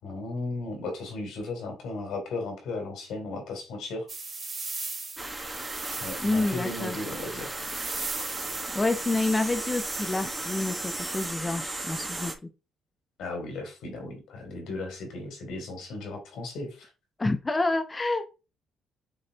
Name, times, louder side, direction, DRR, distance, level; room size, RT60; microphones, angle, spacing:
voice 1, 0.0-4.1 6.0-7.6 13.2-16.9, left 2 dB, 80° left, 3 dB, 3.3 m, -36 dB
sound 1, 4.1-11.3, right 3 dB, 35° right, 3.0 m, -38 dB
sound 2, 5.2-12.3, right 2 dB, 15° right, 1.4 m, -36 dB
voice 2, 6.2-7.0 8.7-12.5 17.2-18.2, left 2 dB, 20° left, 8 dB, 0.8 m, -28 dB
6.5 x 4.0 x 4.0 m, 0.31 s
cardioid pair, 90°, 0 cm